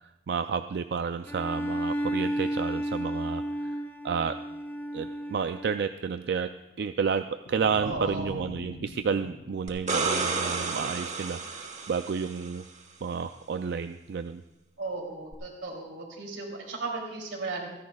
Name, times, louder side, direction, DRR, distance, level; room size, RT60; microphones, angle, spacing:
voice 1, 0.3-3.8 4.0-4.3 4.9-6.5 6.8-12.6 13.0-14.4, right 6 dB, 60° right, 9 dB, 0.3 m, -31 dB
Bowed string instrument, 1.3-6.0, equal, 10° left, 0.7 m, -32 dB
sound 1, 7.5-10.7, left 2 dB, 75° left, 0.6 m, -44 dB
voice 2, 7.8-8.4 14.8-17.7, right 3 dB, 85° right, 1 dB, 2.9 m, -36 dB
sound 2, 9.7-12.5 15.3-15.4, right 4 dB, 40° right, 1.2 m, -31 dB
27.5 x 10.5 x 2.3 m, 1.0 s
head